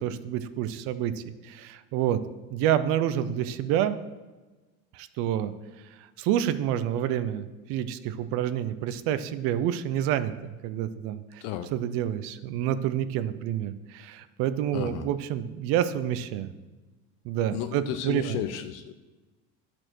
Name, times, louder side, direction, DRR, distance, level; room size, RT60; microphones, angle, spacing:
voice 1, 0.0-2.2 2.5-4.0 4.9-5.5 6.2-11.4 11.7-16.5 17.2-18.4, right 10 dB, 45° right, 13 dB, 0.4 m, -28 dB
voice 2, 11.4-11.7 14.7-15.0 17.5-18.9, left 11 dB, 50° left, 9 dB, 0.5 m, -33 dB
11.5 x 4.4 x 6.1 m, 1.2 s
cardioid pair, 180°, 33 cm